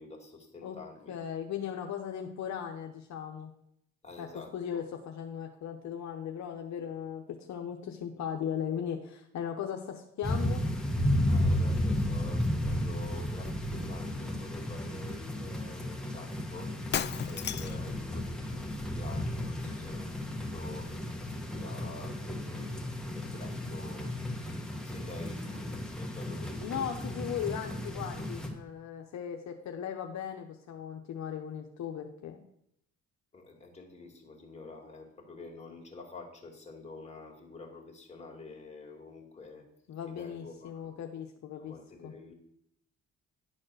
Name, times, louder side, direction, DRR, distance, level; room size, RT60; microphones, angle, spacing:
voice 1, 0.0-1.1 4.0-4.8 11.2-16.8 17.3-22.8 23.2-24.2 24.8-27.0 33.3-39.7 40.1-41.0 41.6-42.3, left 3 dB, 20° left, -1 dB, 2.5 m, -48 dB
voice 2, 1.1-3.5 4.2-10.6 26.6-32.4 39.9-41.7 42.0-42.1, left 8 dB, 65° left, 3 dB, 0.9 m, -37 dB
sound 1, 10.2-28.5, left 1 dB, ahead, 1.6 m, -33 dB
Shatter, 16.9-17.9, left 9 dB, 35° left, 0.4 m, -33 dB
11.0 x 4.3 x 6.4 m, 0.75 s
cardioid pair, 90°, 30 cm